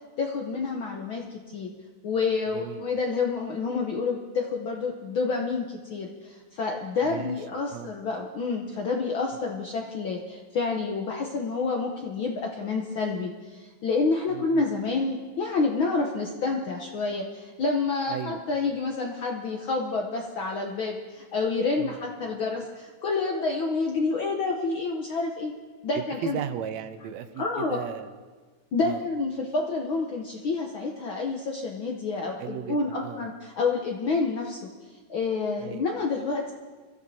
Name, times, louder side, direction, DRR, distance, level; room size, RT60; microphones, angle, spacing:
voice 1, 0.2-1.7 2.0-25.5 25.8-26.4 27.4-27.8 28.7-34.6 35.1-36.5, left 4 dB, 65° left, 1 dB, 1.2 m, -28 dB
voice 2, 2.5-2.8 7.0-7.4 7.7-7.9 14.3-14.6 18.1-18.4 21.8-22.0 25.9-28.1 28.8-29.1 32.4-33.3 35.6-35.9, right 9 dB, 75° right, 9 dB, 1.8 m, -36 dB
25.0 x 13.0 x 2.8 m, 1.4 s
omnidirectional pair, 3.4 m